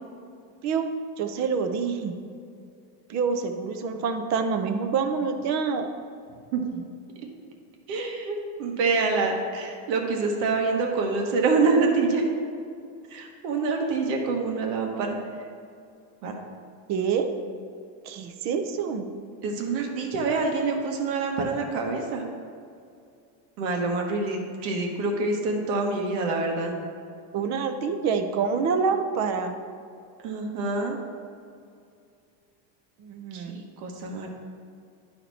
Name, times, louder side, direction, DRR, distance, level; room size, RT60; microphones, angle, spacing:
voice 1, 1.2-2.1 3.1-5.9 16.9-17.3 18.0-19.1 27.3-29.6 33.0-33.6, right 5 dB, 35° right, 7 dB, 0.5 m, -26 dB
voice 2, 7.9-12.2 13.1-15.2 16.2-16.3 19.4-22.2 23.6-26.7 30.2-31.0 33.3-34.3, right 3 dB, 85° right, 1 dB, 1.6 m, -26 dB
11.5 x 4.3 x 4.1 m, 2.4 s
cardioid pair, 160°, 50 cm